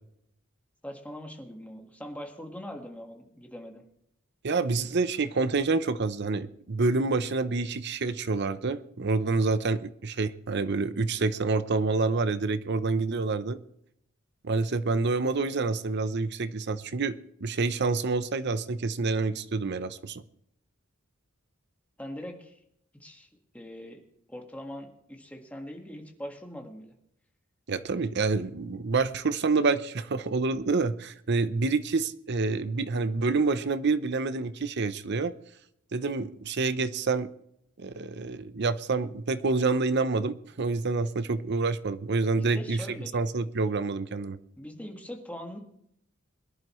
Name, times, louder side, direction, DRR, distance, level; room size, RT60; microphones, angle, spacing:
voice 1, 0.8-3.8 22.0-22.6 22.9-23.3 23.5-24.0 24.3-26.9 42.3-43.1 44.6-45.6, equal, 5° left, 2 dB, 1.7 m, -41 dB
voice 2, 4.4-13.6 14.4-20.2 27.7-35.3 35.9-37.3 37.8-42.8 43.1-44.4, right 3 dB, 55° right, 13 dB, 0.7 m, -27 dB
22.5 x 11.0 x 3.2 m, 0.75 s
head